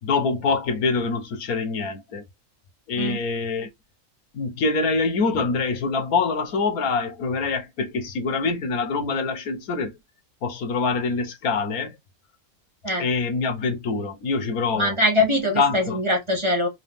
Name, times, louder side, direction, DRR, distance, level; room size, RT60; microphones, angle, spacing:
voice 1, 0.0-2.2 2.9-3.7 4.3-9.9 10.4-11.9 13.0-15.0 15.6-16.0, left 4 dB, 80° left, 1.5 m, -25 dB
voice 2, 14.7-16.7, left 1 dB, 25° right, 0.9 m, -22 dB
3.7 x 2.9 x 3.4 m
omnidirectional pair, 1.5 m